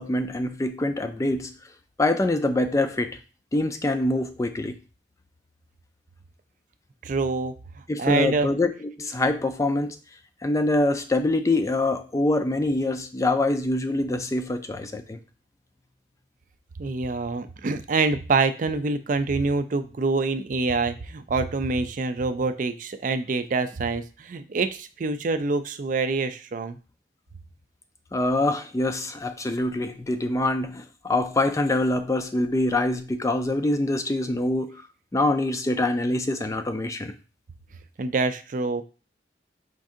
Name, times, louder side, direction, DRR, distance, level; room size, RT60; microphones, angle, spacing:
voice 1, 0.0-1.5 2.0-3.2 3.5-4.8 7.9-10.0 10.4-15.2 28.1-34.8 35.1-37.1, left 2 dB, 20° left, 8 dB, 0.4 m, -25 dB
voice 2, 7.0-7.5 8.0-8.5 16.8-26.8 38.0-38.8, right 3 dB, 45° right, 10 dB, 0.4 m, -26 dB
5.2 x 2.6 x 3.6 m, 0.34 s
head